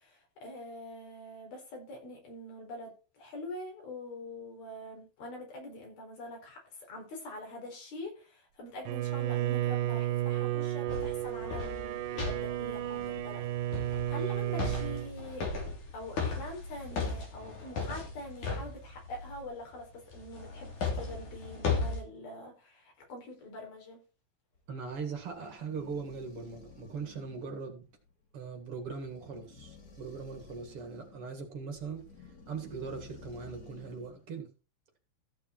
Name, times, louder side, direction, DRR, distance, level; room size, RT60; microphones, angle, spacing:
voice 1, 0.0-13.5 13.7-15.5 15.9-24.0, left 1 dB, 75° left, 6.3 m, -44 dB
Bowed string instrument, 8.8-15.1, right 14 dB, 75° right, 2.3 m, -33 dB
sound 1, 10.9-19.5 20.1-22.0, left 4 dB, 55° left, 4.3 m, -37 dB
sound 2, 24.5-34.3, left 5 dB, 30° left, 2.6 m, -54 dB
voice 2, 24.7-27.9 28.3-32.0 32.5-34.5, right 5 dB, 45° right, 2.3 m, -40 dB
15.0 x 6.7 x 4.5 m
omnidirectional pair, 4.2 m